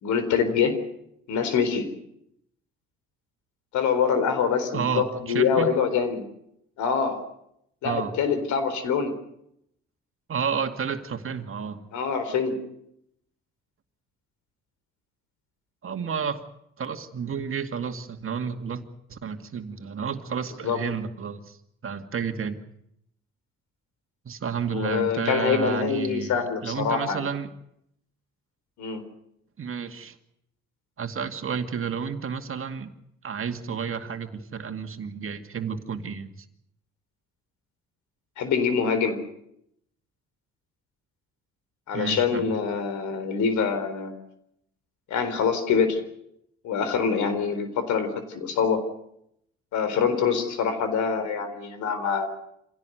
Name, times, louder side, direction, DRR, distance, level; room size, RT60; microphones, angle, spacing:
voice 1, 0.0-0.8 1.3-1.9 3.7-6.2 6.8-7.2 7.8-9.1 11.9-12.6 20.6-20.8 24.7-27.3 28.8-29.0 38.4-39.2 41.9-44.1 45.1-46.0 46.6-48.8 49.7-52.3, left 6 dB, 70° left, 11 dB, 4.1 m, -25 dB
voice 2, 4.7-5.7 7.8-8.1 10.3-11.8 15.8-16.4 16.8-18.8 19.1-21.6 21.8-22.6 24.3-27.5 29.6-30.1 31.0-32.9 33.2-36.4 41.9-42.5, right 6 dB, 45° right, 6 dB, 2.3 m, -31 dB
26.5 x 17.0 x 8.0 m, 0.77 s
hypercardioid pair, 60°, 30 cm